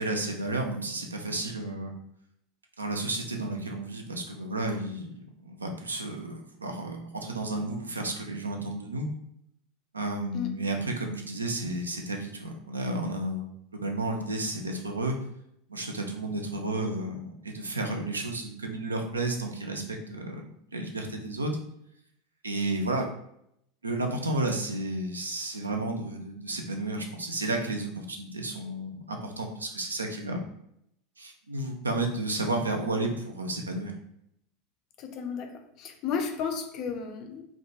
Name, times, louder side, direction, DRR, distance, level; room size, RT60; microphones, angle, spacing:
voice 1, 0.0-1.9 2.8-9.1 9.9-15.2 15.7-21.6 22.4-23.1 23.8-30.4 31.2-33.9, right 2 dB, 80° right, 3 dB, 0.3 m, -32 dB
voice 2, 35.0-37.5, left 6 dB, 40° left, 5 dB, 0.4 m, -33 dB
2.5 x 2.1 x 2.7 m, 0.74 s
figure-of-eight pair, 80°, 0 cm